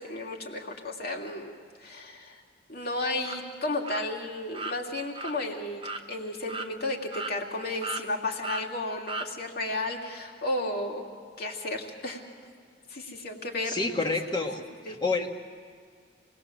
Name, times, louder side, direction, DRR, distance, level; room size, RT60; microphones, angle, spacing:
voice 1, 0.0-1.5 1.8-2.4 2.7-11.0 11.4-12.2 12.9-13.8 14.0-14.1 14.9-15.0, left 2 dB, 50° left, 1 dB, 2.8 m, -33 dB
sound 1, 3.2-3.4 3.9-4.0 4.5-4.8 5.2-5.3 5.8-6.0 6.5-6.7 7.1-7.6 7.8-8.1 8.4-8.7 9.1-9.3, right 3 dB, 25° right, 0.8 m, -35 dB
voice 2, 13.7-14.6 14.9-15.3, left 3 dB, 20° left, 2 dB, 1.7 m, -28 dB
28.5 x 20.0 x 7.5 m, 2.1 s
head